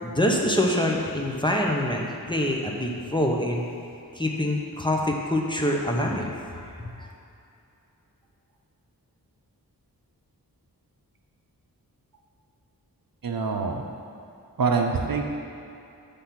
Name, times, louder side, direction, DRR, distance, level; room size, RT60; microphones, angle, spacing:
voice 1, 0.0-3.6 4.1-7.1, left 1 dB, 10° left, -1 dB, 0.8 m, -25 dB
voice 2, 13.2-13.8 14.6-15.2, right 4 dB, 65° right, 2 dB, 0.7 m, -25 dB
7.6 x 3.4 x 5.8 m, 2.7 s
wide cardioid pair, 55°, 38 cm